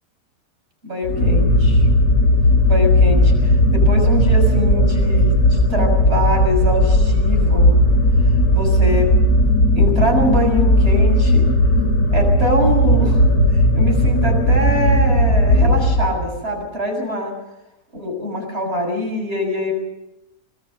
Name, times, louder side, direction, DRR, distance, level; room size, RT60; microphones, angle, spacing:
voice 1, 0.8-1.9 2.6-7.7 8.5-9.1 9.7-11.4 12.1-13.3 13.5-17.3 17.9-19.7, equal, 40° right, 1 dB, 6.8 m, -23 dB
sound 1, 1.0-16.4, left 1 dB, 70° left, 3.3 m, -15 dB
26.0 x 21.5 x 6.7 m, 0.94 s
omnidirectional pair, 1.7 m